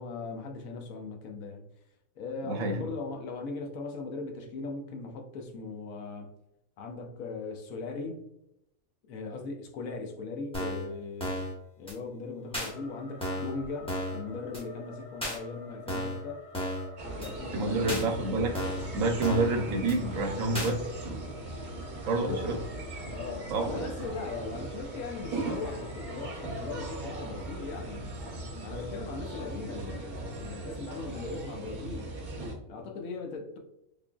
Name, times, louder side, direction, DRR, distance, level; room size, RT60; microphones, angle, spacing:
voice 1, 0.0-1.6 2.2-6.3 6.8-8.2 9.1-11.4 11.8-16.4 17.2-18.0 22.1-22.5 23.0-28.2 28.6-32.2 32.7-33.6, left 4 dB, 75° left, 1.0 m, -39 dB
voice 2, 2.4-2.8 17.5-18.6 18.9-20.8 22.0-22.6 23.5-23.7, right 2 dB, 70° right, 1.0 m, -28 dB
sound 1, 10.5-10.9 11.2-11.5 11.9-12.0 12.5-12.7 13.2-13.5 13.9-14.2 14.5-14.6 15.2-15.4 15.9-16.2 16.5-16.9 17.2-17.3 17.9-18.0 18.5-18.9 19.2-19.5 19.9-20.0 20.5-20.7, equal, 5° left, 0.6 m, -33 dB
sound 2, 12.5-29.5, left 3 dB, 50° left, 1.1 m, -50 dB
sound 3, 17.0-32.5, right 2 dB, 40° right, 0.8 m, -39 dB
3.8 x 3.3 x 2.2 m
omnidirectional pair, 1.5 m